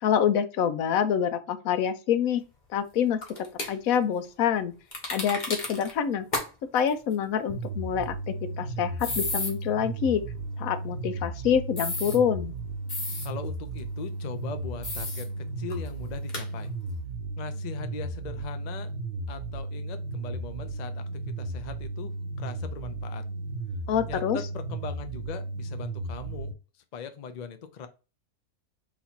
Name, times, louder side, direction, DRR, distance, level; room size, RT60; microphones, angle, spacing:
voice 1, 0.0-2.4 2.7-4.7 5.1-6.3 6.7-10.2 10.6-12.5 23.9-24.4, left 8 dB, 85° left, 1.1 m, -26 dB
sound 1, 3.2-3.7 4.9-5.9 6.3-6.5 6.8-6.9 9.0-9.5 11.8-12.2 12.9-13.3 14.8-15.3 15.7-15.8 16.3-16.5, left 2 dB, 35° left, 1.1 m, -32 dB
sound 2, 7.5-26.5, right 2 dB, 55° right, 0.8 m, -35 dB
voice 2, 13.2-16.7 17.4-18.9 19.3-21.0 21.4-22.1 22.4-23.2 24.1-26.5 26.9-27.9, left 7 dB, 55° left, 0.5 m, -40 dB
4.1 x 3.0 x 4.2 m
omnidirectional pair, 1.5 m